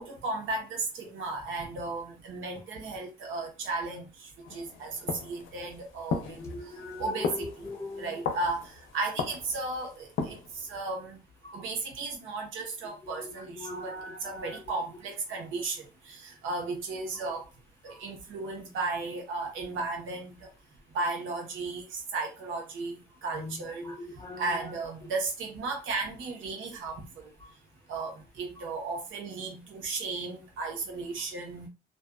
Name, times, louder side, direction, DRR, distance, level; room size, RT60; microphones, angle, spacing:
voice 1, 0.0-6.4 7.0-7.5 8.0-11.2 11.5-13.9 14.2-17.4 17.8-20.5 20.9-23.9 24.4-27.3 27.9-31.7, right 3 dB, 85° right, 0.9 m, -35 dB
sound 1, 4.4-10.7, left 5 dB, 80° left, 0.5 m, -37 dB
voice 2, 6.2-8.3 11.4-11.6 13.0-14.8 17.9-18.1 23.3-24.7 27.4-27.5 28.6-28.7, left 2 dB, 15° left, 0.9 m, -41 dB
2.5 x 2.2 x 2.3 m
cardioid pair, 90°, 20 cm